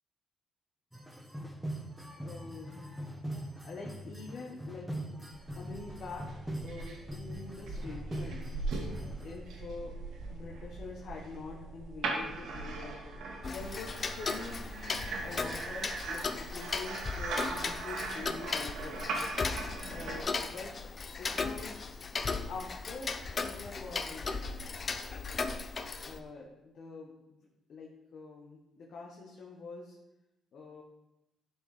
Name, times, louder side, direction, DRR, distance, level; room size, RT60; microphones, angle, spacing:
sound 1, 0.9-9.4, right 1 dB, 5° right, 1.4 m, -42 dB
voice 1, 2.1-2.8 3.6-6.3 6.6-8.4 9.0-10.0 10.3-13.0 13.4-19.1 19.8-20.7 21.2-22.0 22.5-25.0 26.0-27.4 27.7-30.0 30.5-30.8, left 4 dB, 60° left, -2 dB, 1.5 m, -45 dB
sound 2, 5.3-20.2, right 3 dB, 80° right, 2.0 m, -40 dB
Tick-tock, 13.4-26.2, left 4 dB, 40° left, 0.7 m, -37 dB
11.5 x 4.8 x 5.1 m, 0.95 s
cardioid pair, 90°, 0 cm